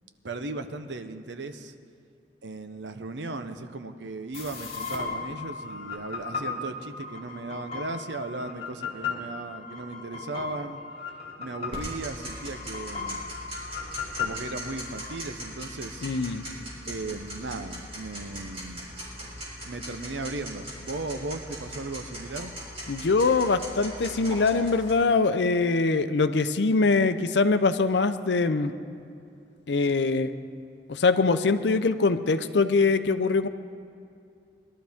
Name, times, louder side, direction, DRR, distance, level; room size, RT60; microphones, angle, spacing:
voice 1, 0.2-1.7 2.4-10.8 11.4-13.2 14.2-16.1 16.9-18.9 19.6-22.5, right 2 dB, 90° right, 9 dB, 0.8 m, -36 dB
sound 1, 4.3-15.1, left 5 dB, 35° left, 2.5 m, -36 dB
Tick-tock, 11.7-24.9, equal, 35° right, 3.8 m, -40 dB
voice 2, 16.0-16.4 22.9-28.7 29.7-30.3 30.9-33.5, left 4 dB, 75° left, 10 dB, 0.6 m, -23 dB
21.0 x 12.5 x 3.5 m, 2.5 s
head